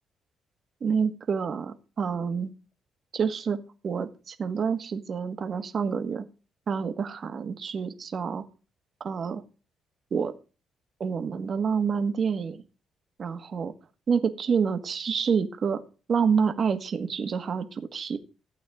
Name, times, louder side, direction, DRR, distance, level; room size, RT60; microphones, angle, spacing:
voice 1, 0.8-2.5 3.1-3.6 3.8-6.2 6.7-8.4 9.0-9.4 10.1-10.3 11.0-12.6 13.2-13.7 14.1-15.8 16.1-18.2, right 6 dB, 50° right, 7 dB, 1.5 m, -28 dB
15.0 x 8.4 x 3.7 m, 0.35 s
cardioid pair, 90°, 0 cm